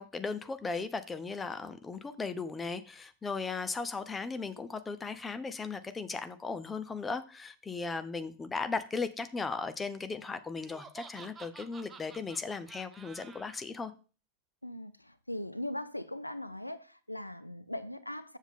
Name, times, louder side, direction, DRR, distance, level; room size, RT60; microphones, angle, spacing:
voice 1, 0.0-13.9, left 4 dB, 15° left, 0.8 m, -37 dB
Laughter, 10.6-13.6, right 5 dB, 20° right, 0.8 m, -51 dB
voice 2, 14.6-18.4, left 1 dB, 85° left, 0.4 m, -40 dB
7.3 x 7.2 x 3.6 m
figure-of-eight pair, 90°, 0 cm